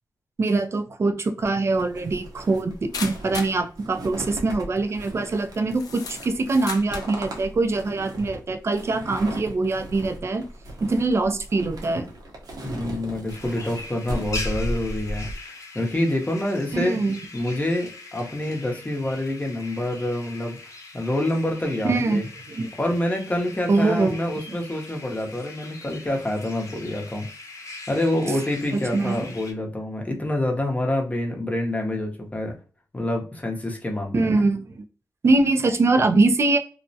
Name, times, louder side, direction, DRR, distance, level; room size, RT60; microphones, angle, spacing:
voice 1, 0.4-10.4 10.8-12.1 16.7-17.2 21.8-22.2 22.5-22.7 23.7-24.2 28.7-29.3 34.1-34.8 35.2-36.6, right 3 dB, 40° right, 6 dB, 0.4 m, -23 dB
sound 1, 1.5-1.6 2.9-3.6 4.5-4.8 5.5-7.2, left 5 dB, 75° left, 0.4 m, -35 dB
sound 2, 1.7-15.4, equal, 75° right, 0.7 m, -36 dB
voice 2, 12.6-17.0 17.3-20.6 20.9-22.3 22.8-27.3 27.9-32.5 32.9-34.4, left 1 dB, 20° left, 2 dB, 0.7 m, -27 dB
sound 3, 13.3-29.5, left 2 dB, 50° left, 0.8 m, -41 dB
2.3 x 2.1 x 2.6 m, 0.39 s
cardioid pair, 65°, 7 cm